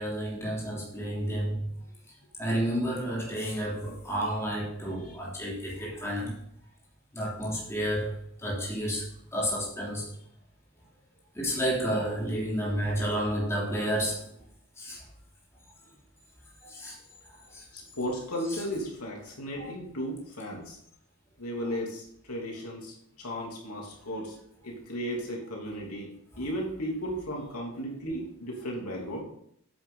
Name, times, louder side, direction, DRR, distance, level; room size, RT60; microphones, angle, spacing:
voice 1, 0.0-1.7 2.4-6.3 7.1-9.0 9.3-10.1 11.3-14.2 14.8-15.0 16.6-16.9 17.5-17.6 18.5-18.6 26.3-26.4, equal, 10° left, -6 dB, 3.2 m, -31 dB
voice 2, 17.7-20.8 21.4-24.3 24.6-26.1 26.4-29.2, equal, 90° left, -2 dB, 3.1 m, -35 dB
9.7 x 8.7 x 3.9 m, 0.70 s
head